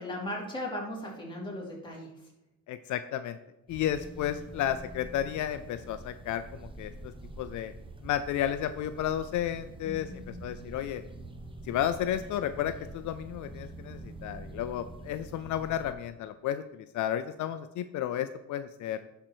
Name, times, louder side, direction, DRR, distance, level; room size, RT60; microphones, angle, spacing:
voice 1, 0.0-2.3 9.8-10.5, left 1 dB, 15° left, -4 dB, 3.4 m, -38 dB
voice 2, 2.7-3.4 3.7-7.7 8.0-11.0 11.7-19.0, left 11 dB, 75° left, 11 dB, 0.5 m, -32 dB
sound 1, 3.7-15.9, right 2 dB, 15° right, 0.9 m, -46 dB
11.0 x 4.5 x 4.5 m, 0.92 s
cardioid pair, 90°, 30 cm